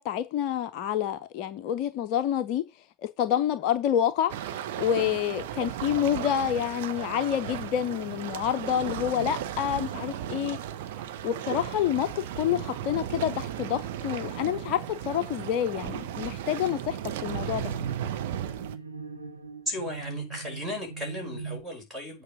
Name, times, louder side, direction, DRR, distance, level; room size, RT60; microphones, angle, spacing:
voice 1, 0.0-2.6 3.0-10.6 11.2-17.7, left 10 dB, 40° left, 0.6 m, -28 dB
sound 1, 4.3-18.8, right 10 dB, 50° right, 0.9 m, -35 dB
sound 2, 17.2-21.6, right 5 dB, 80° right, 1.3 m, -40 dB
voice 2, 19.7-22.2, left 1 dB, 5° right, 5.3 m, -35 dB
8.7 x 4.8 x 6.2 m
figure-of-eight pair, 90°, 0 cm